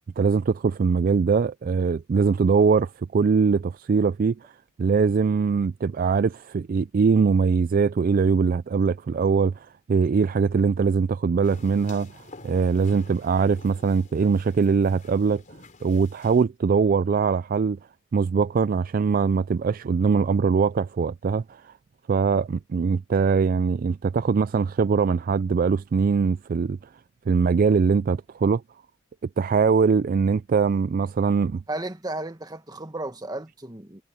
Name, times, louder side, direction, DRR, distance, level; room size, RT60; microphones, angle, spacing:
voice 1, 0.2-4.5 4.8-12.1 12.4-15.4 15.8-17.8 18.1-21.7 22.1-26.8 27.3-28.6 29.2-31.6, right 5 dB, 40° right, 0.3 m, -22 dB
sound 1, 11.4-16.4, left 3 dB, 40° left, 4.0 m, -49 dB
voice 2, 31.7-34.0, right 2 dB, 20° right, 1.4 m, -34 dB
head